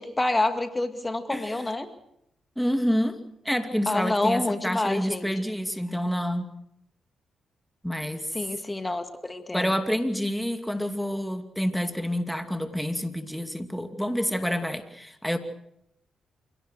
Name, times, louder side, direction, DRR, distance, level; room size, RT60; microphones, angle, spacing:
voice 1, 0.0-1.9 3.9-5.3 8.3-9.8, left 2 dB, 25° left, 9 dB, 2.2 m, -28 dB
voice 2, 2.6-6.6 7.8-8.3 9.5-15.4, equal, 5° left, 8 dB, 2.6 m, -28 dB
28.0 x 18.0 x 6.4 m, 0.77 s
hypercardioid pair, 45°, 0 cm